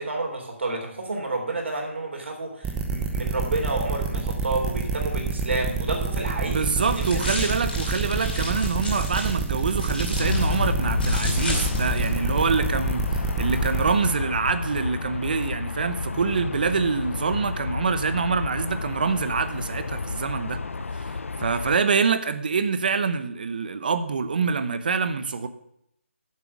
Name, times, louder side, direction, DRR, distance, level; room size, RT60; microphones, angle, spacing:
voice 1, 0.0-7.0 7.4-7.6, right 2 dB, 60° right, 3.4 m, -30 dB
sound 1, 2.6-13.9, right 5 dB, 5° right, 0.9 m, -27 dB
voice 2, 6.4-20.6 20.9-21.1 21.4-25.5, right 5 dB, 40° right, 0.8 m, -25 dB
sound 2, 6.8-12.1, left 2 dB, 45° left, 4.5 m, -34 dB
Aircraft, 10.2-21.8, left 4 dB, 80° left, 0.7 m, -30 dB
9.8 x 7.5 x 7.2 m
hypercardioid pair, 170°, 7 cm